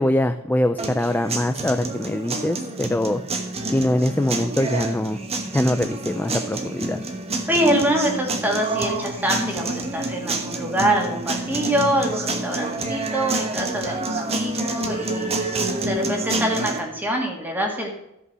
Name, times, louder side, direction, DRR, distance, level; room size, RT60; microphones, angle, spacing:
voice 1, 0.0-3.2 3.7-5.2 5.5-7.0, left 1 dB, 10° left, 8 dB, 0.3 m, -23 dB
sound 1, 0.8-16.8, right 2 dB, 30° right, 1.2 m, -28 dB
voice 2, 7.5-15.5 15.8-17.9, right 1 dB, 10° right, 1 dB, 2.2 m, -24 dB
13.5 x 5.6 x 6.1 m, 0.85 s
head